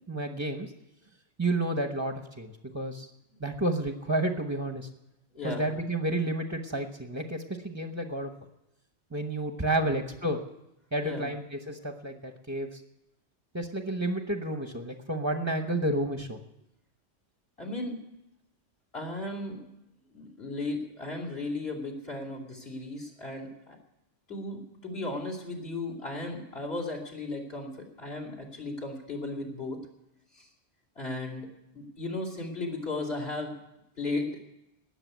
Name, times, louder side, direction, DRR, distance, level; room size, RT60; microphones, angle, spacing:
voice 1, 0.1-0.7 1.4-3.1 3.4-4.9 5.4-8.3 9.1-10.4 10.9-12.8 13.5-16.4, right 1 dB, 15° right, 5 dB, 1.0 m, -31 dB
voice 2, 5.4-5.7 9.8-10.0 11.0-11.3 17.6-18.0 18.9-19.7 20.1-23.8 24.3-29.8 30.3-30.5 31.0-31.5 31.7-33.6 34.0-34.4, left 2 dB, 55° left, 2 dB, 3.1 m, -35 dB
19.0 x 6.9 x 9.4 m, 0.88 s
omnidirectional pair, 1.3 m